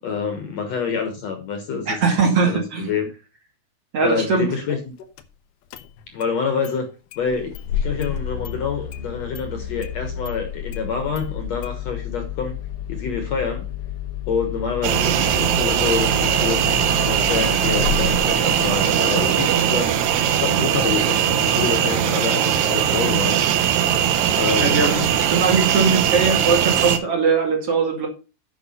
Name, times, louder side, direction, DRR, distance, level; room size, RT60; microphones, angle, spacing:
voice 1, 0.0-2.0 2.5-3.1 4.0-4.9 6.1-6.9 7.2-12.6 12.9-13.7 14.3-19.9 20.3-23.4 24.4-24.9, left 5 dB, 60° left, 6 dB, 2.1 m, -27 dB
voice 2, 1.9-2.9 3.9-4.5 24.6-28.1, right 4 dB, 45° right, 1 dB, 3.0 m, -20 dB
Engine starting, 5.2-5.3 5.7-6.3 6.6-6.7 7.1-19.0, left 9 dB, 85° left, 2.6 m, -31 dB
sound 1, 14.8-27.0, right 9 dB, 70° right, 1.9 m, -20 dB
8.8 x 6.0 x 5.5 m, 0.32 s
omnidirectional pair, 4.1 m